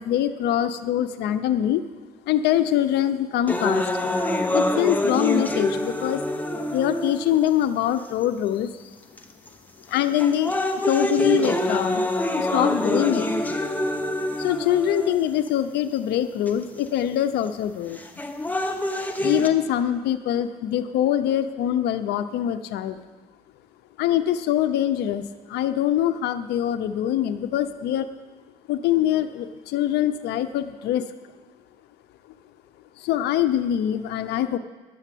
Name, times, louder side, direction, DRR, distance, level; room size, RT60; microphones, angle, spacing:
voice 1, 0.0-1.8 2.3-4.1 4.5-6.2 6.7-8.9 9.9-12.1 12.3-13.3 14.4-18.0 19.2-23.0 24.0-28.1 28.7-31.1 33.0-34.6, left 11 dB, 80° left, 10 dB, 0.6 m, -24 dB
sound 1, 3.5-7.5 8.2-8.3 9.2-9.5 10.0-15.5 16.5-16.6 18.0-19.5, left 1 dB, 10° left, 0.9 m, -25 dB
10.5 x 7.2 x 8.4 m, 1.4 s
cardioid pair, 110°, 17 cm